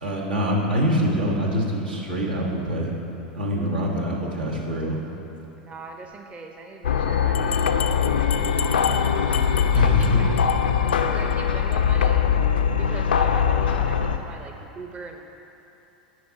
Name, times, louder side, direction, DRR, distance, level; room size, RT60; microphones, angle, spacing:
voice 1, 0.0-2.9 3.3-5.0 9.7-10.2, equal, 90° right, -3 dB, 1.3 m, -24 dB
voice 2, 5.6-9.3 9.8-10.4 11.1-12.2 12.7-15.2, right 4 dB, 25° right, 3 dB, 0.6 m, -41 dB
sound 1, 6.8-14.2, left 7 dB, 85° left, 0.4 m, -21 dB
Bell, 7.3-10.1 10.4-10.6 10.9-11.0 11.3-11.4 11.7-11.8, left 7 dB, 25° left, 0.4 m, -33 dB
9.4 x 4.9 x 4.8 m, 3.0 s
hypercardioid pair, 95°, 5 cm